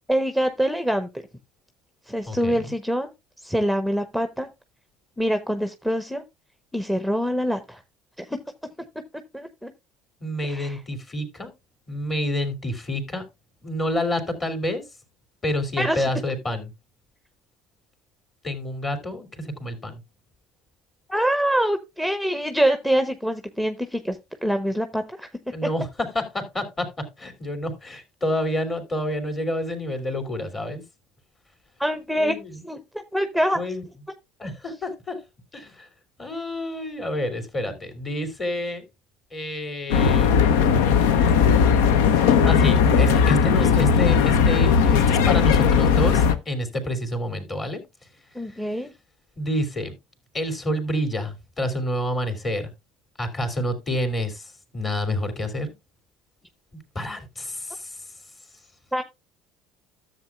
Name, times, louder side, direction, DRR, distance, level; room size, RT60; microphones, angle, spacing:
voice 1, 0.1-1.1 2.1-3.1 3.4-4.5 5.2-6.2 6.7-7.8 8.2-8.4 9.3-9.7 10.5-10.8 15.8-16.1 21.1-25.3 25.6-25.7 31.8-32.4 32.6-33.6 48.3-48.9 58.9-59.0, equal, ahead, 9 dB, 0.8 m, -25 dB
voice 2, 2.3-2.7 10.2-11.5 11.9-13.2 13.6-14.8 15.4-16.7 18.4-20.0 25.5-30.8 32.2-32.5 33.5-33.8 34.4-35.2 35.5-35.9 36.2-38.8 39.3-41.8 42.4-47.8 49.4-49.9 50.3-52.7 53.2-55.7 56.9-58.0, left 1 dB, 30° left, 6 dB, 3.1 m, -28 dB
sound 1, 39.9-46.3, left 6 dB, 70° left, 0.7 m, -18 dB
13.5 x 7.6 x 2.3 m, 0.22 s
hypercardioid pair, 65°, 0 cm